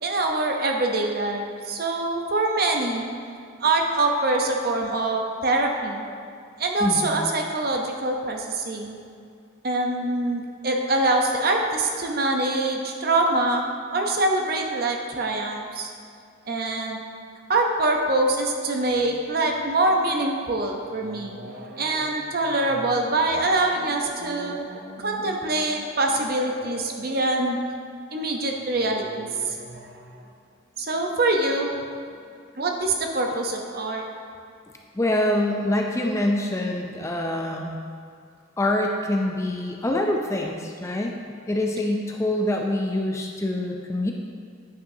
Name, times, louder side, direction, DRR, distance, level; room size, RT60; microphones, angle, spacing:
voice 1, 0.0-3.1 3.6-6.1 6.6-8.9 9.6-13.6 13.9-15.9 16.5-17.0 17.5-27.6 28.1-30.2 30.8-31.7 32.6-34.0, right 2 dB, 50° right, 2 dB, 0.7 m, -24 dB
voice 2, 6.8-7.1 35.0-37.8 38.6-41.1 41.5-44.1, left 1 dB, 15° left, 1 dB, 0.4 m, -25 dB
9.5 x 6.3 x 2.7 m, 2.3 s
head